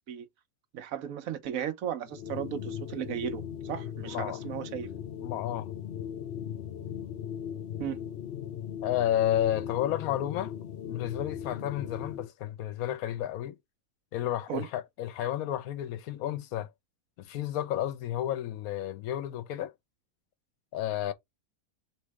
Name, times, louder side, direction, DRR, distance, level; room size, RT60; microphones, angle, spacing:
voice 1, 0.7-4.9 7.8-8.0 14.5-14.7, right 9 dB, 70° right, 1.1 m, -35 dB
sound 1, 2.1-12.3, left 9 dB, 55° left, 0.8 m, -38 dB
voice 2, 4.1-4.4 5.2-5.8 8.8-10.5 10.8-13.6 14.1-16.7 17.2-19.7 20.7-21.1, left 11 dB, 75° left, 1.1 m, -31 dB
3.1 x 3.0 x 4.7 m
omnidirectional pair, 1.5 m